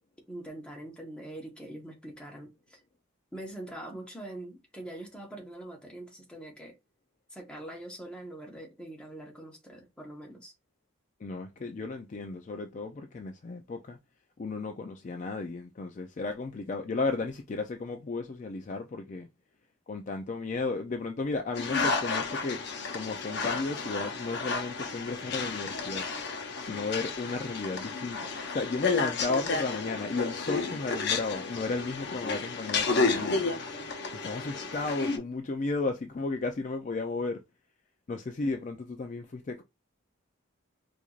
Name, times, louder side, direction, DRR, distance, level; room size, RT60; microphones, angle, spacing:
voice 1, 0.3-2.8 3.3-6.7 7.3-10.5, right 1 dB, 5° left, 0.9 m, -43 dB
voice 2, 11.2-14.0 14.4-19.3 19.9-22.6 22.9-26.0 26.6-28.2 28.5-33.6 34.1-37.4 38.1-39.6, left 3 dB, 35° left, 0.3 m, -34 dB
sound 1, 21.6-35.2, left 4 dB, 50° left, 0.7 m, -32 dB
4.4 x 2.5 x 2.4 m
head